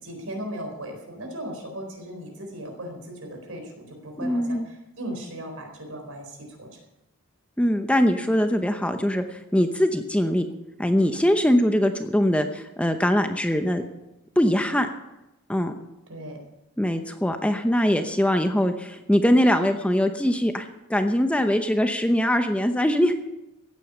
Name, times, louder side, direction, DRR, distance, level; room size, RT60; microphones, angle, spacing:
voice 1, 0.0-6.8 16.1-16.4, right 1 dB, 70° right, 3 dB, 4.2 m, -37 dB
voice 2, 4.2-4.7 7.6-10.5 10.8-13.8 14.4-14.9 15.5-15.7 16.8-23.1, equal, 5° left, 7 dB, 0.8 m, -22 dB
16.0 x 9.2 x 6.9 m, 0.94 s
head